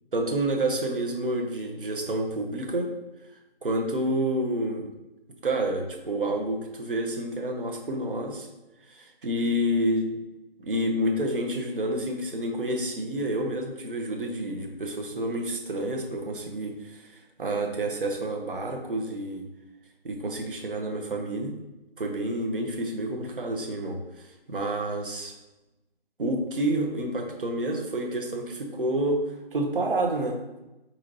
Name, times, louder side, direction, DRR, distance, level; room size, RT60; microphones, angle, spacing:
voice 1, 0.1-2.9 3.3-4.8 5.4-8.5 8.9-10.1 10.6-19.4 20.0-21.5 22.0-25.3 26.2-30.4, right 1 dB, 60° right, 2 dB, 0.8 m, -29 dB
4.3 x 3.9 x 2.8 m, 0.98 s
figure-of-eight pair, 170°, 31 cm